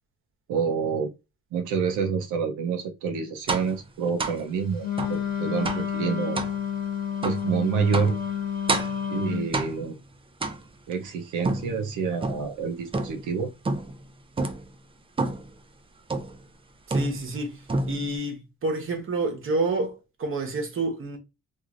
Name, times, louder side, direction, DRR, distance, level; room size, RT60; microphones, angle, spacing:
voice 1, 0.5-1.1 1.5-4.8 5.1-6.4 7.2-8.2 9.1-10.0 10.9-13.5, right 6 dB, 85° right, 0.6 m, -27 dB
sound 1, 3.5-3.8 4.2-4.4 5.0-5.2 5.7-5.9 6.4-6.6 7.2-7.5 7.9-8.2 8.7-9.1 9.5-9.9 10.4-10.9 11.4-12.5 12.9-13.3 13.7-14.0 14.4-14.7 15.2-15.5 16.1-16.4 16.9-17.4 17.7-18.2, right 2 dB, 20° right, 0.4 m, -29 dB
Wind instrument woodwind instrument, 4.8-9.5, left 8 dB, 30° left, 1.1 m, -30 dB
voice 2, 16.9-17.6 17.8-21.2, right 2 dB, 45° right, 1.0 m, -29 dB
3.0 x 2.5 x 2.4 m
cardioid pair, 90°, 30 cm